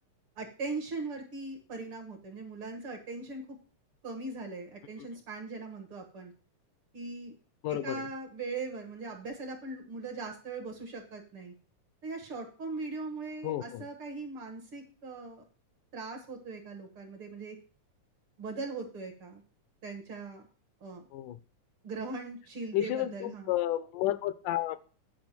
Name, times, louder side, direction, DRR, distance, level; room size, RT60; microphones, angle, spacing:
voice 1, 0.4-3.5 4.0-6.3 6.9-7.4 7.7-11.5 12.0-15.4 15.9-17.6 18.4-19.4 19.8-20.4 20.8-21.1 21.8-23.5, right 3 dB, 50° right, 3 dB, 1.9 m, -40 dB
voice 2, 7.6-8.0 13.4-13.9 21.1-21.4 22.7-24.8, left 13 dB, 80° left, 14 dB, 2.2 m, -31 dB
9.4 x 5.0 x 7.4 m, 0.38 s
omnidirectional pair, 3.7 m